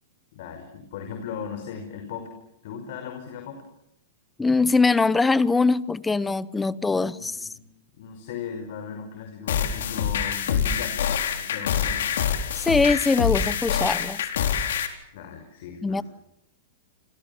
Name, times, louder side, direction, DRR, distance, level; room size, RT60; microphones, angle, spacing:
voice 1, 0.3-2.3 2.6-3.6 6.9-7.6 8.0-12.1 15.1-16.0, left 7 dB, 60° left, 5 dB, 5.3 m, -37 dB
voice 2, 4.4-7.5 12.5-14.2 15.8-16.0, left 3 dB, 10° left, 18 dB, 1.0 m, -22 dB
sound 1, 9.5-14.9, left 8 dB, 75° left, 4.3 m, -25 dB
29.5 x 26.5 x 7.2 m, 0.78 s
hypercardioid pair, 135°, 0 cm